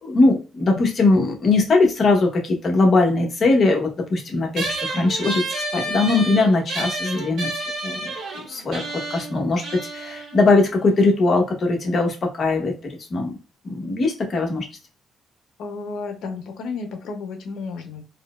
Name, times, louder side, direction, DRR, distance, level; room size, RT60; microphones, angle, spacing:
voice 1, 0.0-8.1 8.5-8.8 9.1-12.7 13.1-13.4 13.6-14.6, left 3 dB, 50° left, 1 dB, 1.1 m, -20 dB
sound 1, 4.5-11.3, right 2 dB, 75° right, 1.5 m, -31 dB
voice 2, 15.6-18.0, left 4 dB, 80° left, 5 dB, 0.7 m, -32 dB
4.1 x 2.2 x 2.4 m, 0.32 s
cardioid pair, 90°, 0 cm